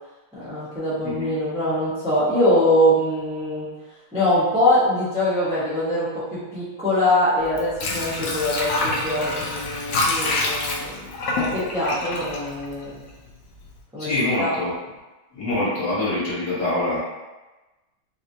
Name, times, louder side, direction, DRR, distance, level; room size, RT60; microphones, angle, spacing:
voice 1, 0.3-3.7 4.1-11.0 11.3-13.0 13.9-14.1 14.4-14.5, left 1 dB, 5° right, -11 dB, 0.4 m, -23 dB
Water / Sink (filling or washing), 7.4-13.3 13.6-13.7, left 2 dB, 75° left, 0.9 m, -26 dB
voice 2, 14.0-14.7 15.3-17.0, left 2 dB, 55° left, -10 dB, 1.8 m, -24 dB
4.1 x 2.1 x 2.7 m, 1.1 s
omnidirectional pair, 2.2 m